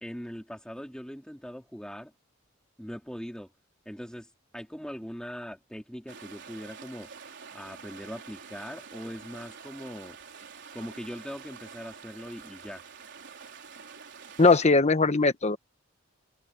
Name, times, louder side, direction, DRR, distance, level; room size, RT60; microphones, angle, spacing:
voice 1, 0.0-2.1 2.8-3.5 3.9-4.3 4.5-7.1 7.5-10.2 10.7-12.8, equal, 5° left, 2.3 m, -41 dB
sound 1, 6.1-14.7, right 6 dB, 60° right, 4.1 m, -47 dB
voice 2, 14.4-15.6, left 3 dB, 35° left, 1.0 m, -20 dB
head